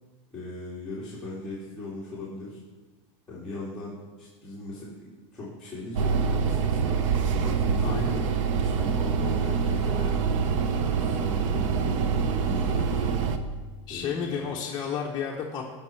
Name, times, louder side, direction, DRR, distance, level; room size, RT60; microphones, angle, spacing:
voice 1, 0.3-2.6 3.3-5.0 5.3-7.0 7.3-8.2 8.6-10.2 10.9-13.1 13.9-14.5, left 2 dB, 5° left, -10 dB, 2.4 m, -38 dB
sound 1, 6.0-13.4, right 6 dB, 90° right, 0.9 m, -25 dB
voice 2, 7.8-8.2 13.9-15.6, left 6 dB, 25° left, -2 dB, 0.9 m, -31 dB
16.5 x 5.7 x 4.5 m, 1.3 s
supercardioid pair, 150°, 16 cm